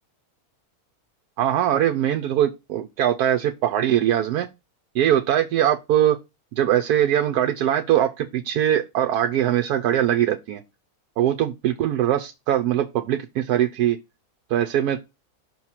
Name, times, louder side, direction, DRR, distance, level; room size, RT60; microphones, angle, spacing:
voice 1, 1.4-4.5 4.9-6.2 6.5-10.6 11.2-14.0 14.5-15.0, right 11 dB, 80° right, 1.1 m, -21 dB
5.9 x 3.1 x 5.6 m
omnidirectional pair, 1.6 m